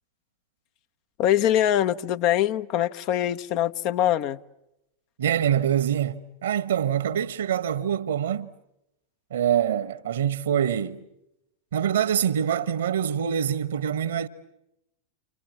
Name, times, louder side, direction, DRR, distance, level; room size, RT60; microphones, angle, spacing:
voice 1, 1.2-4.4, left 11 dB, 40° left, 0.9 m, -23 dB
voice 2, 5.2-8.5 9.3-11.0 11.7-14.3, right 9 dB, 60° right, 1.3 m, -25 dB
29.5 x 27.0 x 7.3 m
figure-of-eight pair, 90°, 0 cm